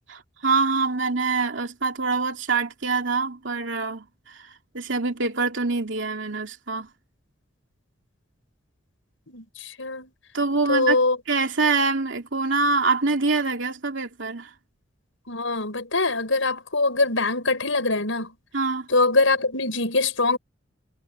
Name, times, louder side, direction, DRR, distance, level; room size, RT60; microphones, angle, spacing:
voice 1, 0.1-6.9 10.3-11.0 11.3-14.5 18.5-18.9, right 4 dB, 75° right, 2.7 m, -25 dB
voice 2, 9.3-10.1 10.7-11.2 15.3-18.3 18.9-20.4, left 3 dB, 85° left, 6.0 m, -23 dB
head